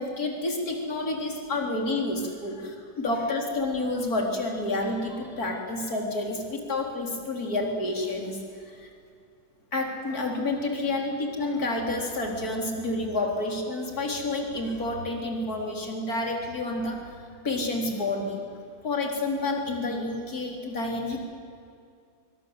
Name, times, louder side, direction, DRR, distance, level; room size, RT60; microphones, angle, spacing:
voice 1, 0.0-8.4 8.7-8.9 9.7-17.1 17.4-18.4 18.8-21.2, left 2 dB, 45° left, 1 dB, 4.3 m, -29 dB
25.5 x 23.0 x 8.0 m, 2.4 s
omnidirectional pair, 2.3 m